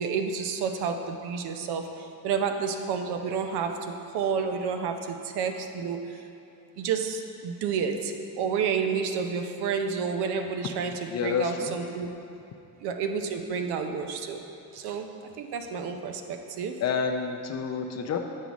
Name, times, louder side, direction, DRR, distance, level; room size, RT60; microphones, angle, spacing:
voice 1, 0.0-6.2 6.8-12.1 12.8-14.4 14.7-15.1 15.4-16.8, right 6 dB, 65° right, 5 dB, 0.7 m, -30 dB
voice 2, 11.1-11.8 16.8-18.2, left 6 dB, 40° left, 4 dB, 0.5 m, -29 dB
7.5 x 4.7 x 4.0 m, 2.7 s
cardioid pair, 100°, 42 cm